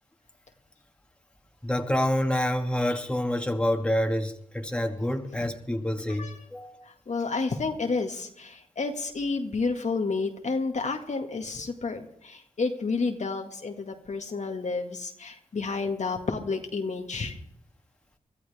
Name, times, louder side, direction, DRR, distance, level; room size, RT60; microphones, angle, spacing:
voice 1, 1.6-6.8, left 1 dB, 5° left, 4 dB, 2.1 m, -27 dB
voice 2, 6.1-6.4 6.8-17.4, left 4 dB, 60° left, 4 dB, 1.8 m, -30 dB
23.5 x 14.0 x 3.5 m, 0.72 s
cardioid pair, 55°, 14 cm